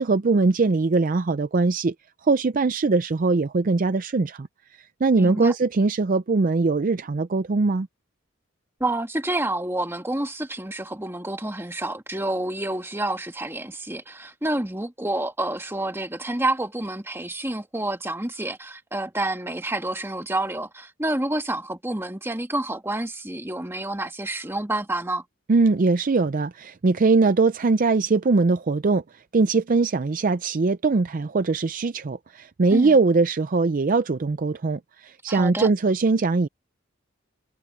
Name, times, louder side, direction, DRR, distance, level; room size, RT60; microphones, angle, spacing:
voice 1, 0.0-1.9 2.2-4.5 5.0-7.9 25.5-36.5, right 3 dB, 40° right, 0.4 m, -21 dB
voice 2, 5.2-5.5 8.8-25.2 32.7-33.0 35.3-35.7, right 1 dB, 10° right, 1.8 m, -28 dB
head